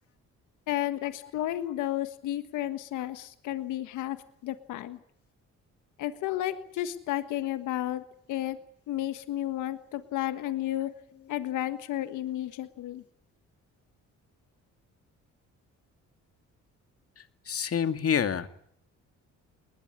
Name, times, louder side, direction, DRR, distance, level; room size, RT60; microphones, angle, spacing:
voice 1, 0.7-4.2 4.4-5.0 6.0-8.0 8.3-8.6 8.9-10.9 11.3-13.0, left 13 dB, 90° left, 10 dB, 1.6 m, -32 dB
voice 2, 17.2-18.5, left 8 dB, 50° left, 9 dB, 2.4 m, -28 dB
20.5 x 20.5 x 9.6 m, 0.65 s
cardioid pair, 90°, 30 cm